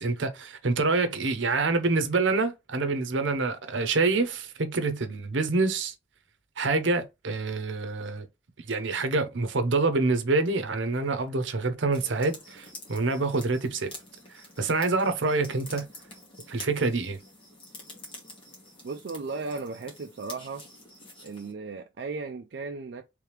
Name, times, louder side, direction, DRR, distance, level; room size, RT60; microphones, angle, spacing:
voice 1, 0.0-5.9 6.6-8.3 8.6-13.9 14.3-15.9 16.5-17.2, right 3 dB, 80° right, 0.8 m, -26 dB
sound 1, 11.9-21.5, left 1 dB, 30° left, 1.5 m, -47 dB
voice 2, 18.8-20.6 21.2-23.0, right 4 dB, 60° right, 0.4 m, -36 dB
3.3 x 3.2 x 3.2 m
head